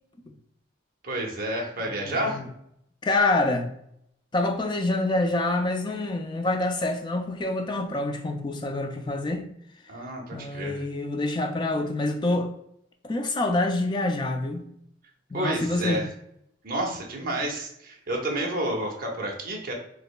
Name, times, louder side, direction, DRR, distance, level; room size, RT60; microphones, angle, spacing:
voice 1, 1.0-2.4 9.9-10.8 15.3-16.1 16.6-19.7, right 1 dB, 45° right, 0.8 m, -30 dB
voice 2, 1.9-2.5 3.0-3.7 4.3-9.5 10.3-12.5 13.0-14.7 15.3-16.0, left 2 dB, 25° left, 0.3 m, -26 dB
5.0 x 2.0 x 2.3 m
head